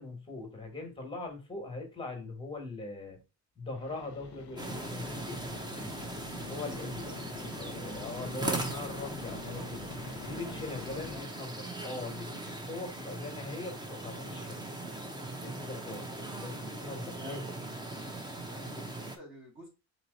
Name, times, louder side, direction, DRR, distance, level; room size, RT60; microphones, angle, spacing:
voice 1, 0.0-3.2 3.5-5.9 6.4-7.1 7.6-9.9 10.2-14.7 15.3-16.1 16.4-17.4, left 2 dB, 10° left, 2 dB, 1.3 m, -41 dB
sound 1, 3.8-11.2, left 8 dB, 45° left, 0.7 m, -46 dB
sound 2, 4.6-19.2, right 2 dB, 10° right, 0.5 m, -39 dB
voice 2, 7.1-8.4 10.4-10.6 10.9-11.5 16.1-16.2 17.2-17.4 18.4-19.7, left 1 dB, 30° right, -1 dB, 1.3 m, -52 dB
4.0 x 3.0 x 3.8 m, 0.30 s
cardioid pair, 165°, 41 cm